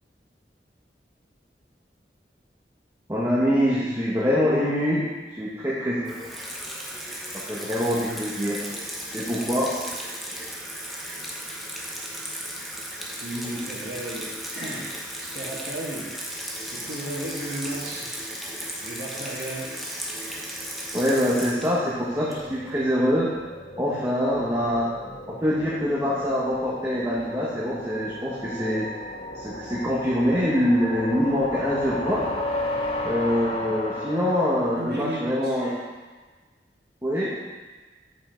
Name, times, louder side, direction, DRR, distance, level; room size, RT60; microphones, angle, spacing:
voice 1, 3.1-5.1 5.4-6.5 7.5-8.6 9.1-9.7 20.9-23.3 23.8-24.9 25.3-28.9 29.3-32.2 33.0-35.7 37.0-37.3, equal, 15° right, -8 dB, 1.2 m, -24 dB
Water tap faucet / Sink (filling or washing), 6.1-22.8, equal, ahead, 0.7 m, -35 dB
voice 2, 13.2-14.9 15.2-16.1 16.7-18.2 18.8-19.8 25.0-25.1 34.7-35.6, right 1 dB, 65° right, -6 dB, 1.6 m, -34 dB
sound 1, 20.6-35.8, left 1 dB, 35° left, 0.7 m, -35 dB
7.4 x 5.8 x 4.4 m, 1.3 s
head